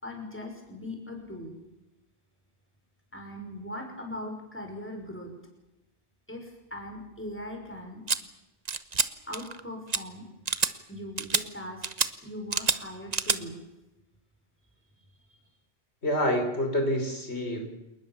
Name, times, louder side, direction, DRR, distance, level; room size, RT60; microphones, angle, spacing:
voice 1, 0.0-1.6 3.1-5.3 6.3-8.0 9.3-10.3 10.9-11.9 12.2-13.6, left 1 dB, 10° left, 2 dB, 5.7 m, -40 dB
sound 1, 8.1-8.2 8.7-9.1 9.3-9.6 9.9-10.0 10.5-10.7 11.2-11.4 11.8-12.1 12.5-12.8 13.1-13.4, right 5 dB, 40° right, 1.1 m, -27 dB
voice 2, 16.0-17.7, equal, 75° left, 4 dB, 5.0 m, -27 dB
28.0 x 20.5 x 7.3 m, 0.96 s
omnidirectional pair, 1.1 m